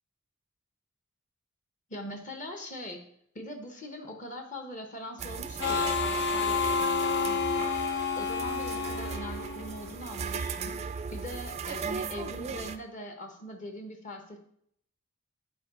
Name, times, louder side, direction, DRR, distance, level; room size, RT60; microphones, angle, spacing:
voice 1, 1.9-3.0 3.3-7.7 8.2-10.8 11.1-14.4, left 1 dB, 35° left, 4 dB, 1.1 m, -41 dB
sound 1, 5.2-12.8, right 5 dB, 30° right, 0.4 m, -37 dB
Harmonica, 5.6-10.1, left 5 dB, 50° left, 0.5 m, -30 dB
9.3 x 4.6 x 4.3 m, 0.68 s
head